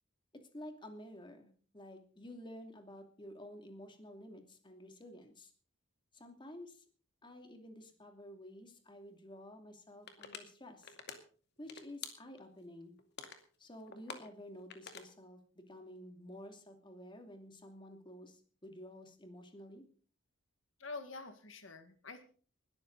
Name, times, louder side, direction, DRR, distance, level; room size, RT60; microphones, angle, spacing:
voice 1, 0.3-5.5 6.1-6.8 7.2-11.0 11.6-12.9 13.6-19.8, left 1 dB, 25° left, 5 dB, 2.7 m, -51 dB
sound 1, 10.1-10.4 10.8-11.2 11.6-12.5 13.0-13.4 13.9-15.1, left 6 dB, 55° left, 2.4 m, -46 dB
voice 2, 20.8-22.2, left 3 dB, 75° left, 8 dB, 1.9 m, -46 dB
20.5 x 13.5 x 4.1 m, 0.43 s
head